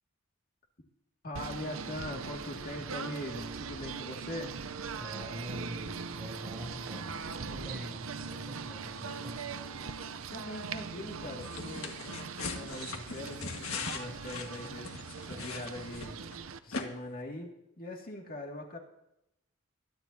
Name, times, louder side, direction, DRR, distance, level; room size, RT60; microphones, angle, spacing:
voice 1, 1.2-4.5 10.3-16.2 16.6-18.8, left 1 dB, 45° left, 1 dB, 2.2 m, -42 dB
Singing / Bird, 1.3-16.6, right 5 dB, 75° right, 0.7 m, -41 dB
voice 2, 5.0-9.4, equal, 5° right, -4 dB, 6.6 m, -44 dB
sound 1, 11.4-16.3 16.7-16.8, left 4 dB, 90° left, 1.7 m, -40 dB
21.5 x 12.0 x 2.8 m, 0.83 s
head